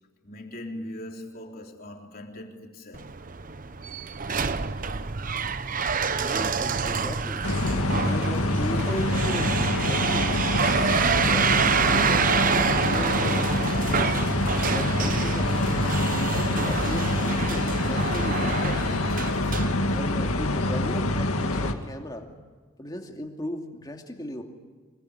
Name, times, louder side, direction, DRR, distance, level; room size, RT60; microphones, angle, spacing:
voice 1, 0.2-3.1, left 1 dB, 45° left, 3.8 m, -40 dB
sound 1, 2.9-20.4, right 5 dB, 40° right, 0.8 m, -27 dB
voice 2, 6.2-7.4 8.0-10.9 11.3-11.5 11.8-13.5 14.6-18.9 19.9-22.3 22.8-24.4, left 1 dB, 20° left, 2.6 m, -37 dB
sound 2, 7.4-21.7, left 2 dB, 85° left, 2.0 m, -26 dB
26.0 x 23.0 x 9.9 m
head